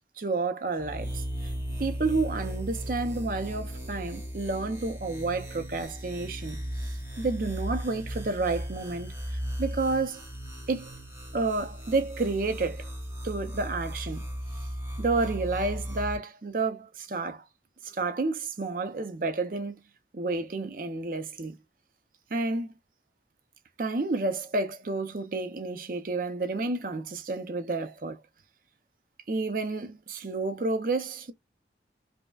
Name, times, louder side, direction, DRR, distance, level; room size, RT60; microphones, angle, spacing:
voice 1, 0.2-1.1 1.8-6.6 7.2-9.1 9.6-10.2 10.7-10.9 11.3-12.9 13.2-14.2 15.0-17.4 17.8-19.8 20.1-21.5 22.3-22.7 23.8-28.2 29.3-31.3, right 3 dB, 50° right, 0.5 m, -30 dB
sound 1, 0.8-16.2, equal, 15° right, 0.9 m, -36 dB
5.1 x 2.1 x 2.3 m
head